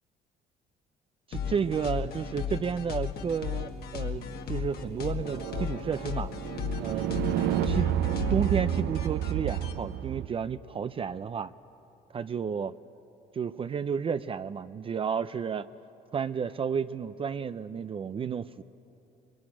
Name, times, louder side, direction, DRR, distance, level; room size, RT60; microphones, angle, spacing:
sound 1, 1.3-9.7, left 8 dB, 65° left, 1.9 m, -36 dB
voice 1, 1.3-6.3 6.8-7.1 7.6-7.9 8.3-11.5 12.1-12.7 13.3-15.7 16.1-18.6, right 6 dB, 35° right, 13 dB, 0.5 m, -32 dB
sound 2, 4.7-10.3, right 11 dB, 85° right, 0.7 m, -30 dB
22.0 x 21.5 x 9.9 m, 2.9 s
cardioid pair, 110°, 17 cm